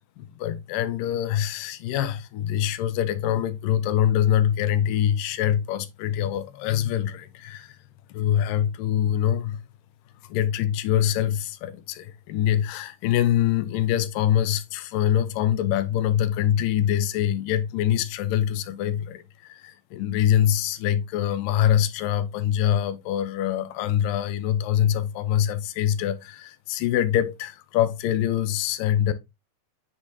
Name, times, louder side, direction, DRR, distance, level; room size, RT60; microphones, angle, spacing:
voice 1, 0.2-7.8 8.1-9.6 10.3-29.1, left 10 dB, 80° left, 2.1 m, -24 dB
9.7 x 4.0 x 2.7 m
omnidirectional pair, 4.3 m